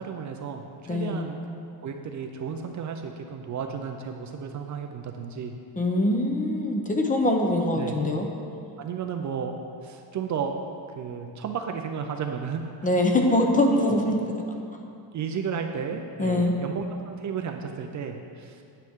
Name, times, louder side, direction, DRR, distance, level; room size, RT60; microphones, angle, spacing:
voice 1, 0.0-1.4 1.8-5.5 7.7-8.0 8.8-9.5 9.8-10.5 11.0-12.6 13.8-14.0 15.1-18.6, right 7 dB, 40° right, 4 dB, 0.5 m, -33 dB
voice 2, 0.9-1.3 5.8-8.3 12.8-14.1 16.2-16.5, left 1 dB, 15° left, 2 dB, 0.7 m, -23 dB
9.1 x 9.1 x 3.6 m, 2.5 s
cardioid pair, 145°, 46 cm